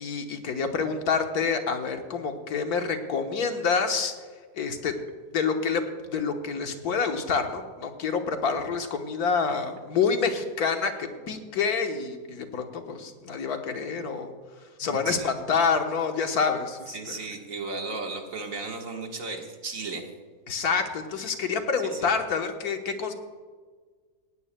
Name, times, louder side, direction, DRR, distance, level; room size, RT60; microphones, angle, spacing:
voice 1, 0.0-4.1 4.6-4.9 5.3-14.3 14.8-17.2 20.5-23.1, left 5 dB, 85° left, 5 dB, 1.6 m, -27 dB
voice 2, 14.8-15.3 16.9-20.1 21.9-22.1, right 3 dB, 60° right, 2 dB, 1.9 m, -35 dB
18.5 x 16.0 x 2.2 m, 1.5 s
omnidirectional pair, 1.6 m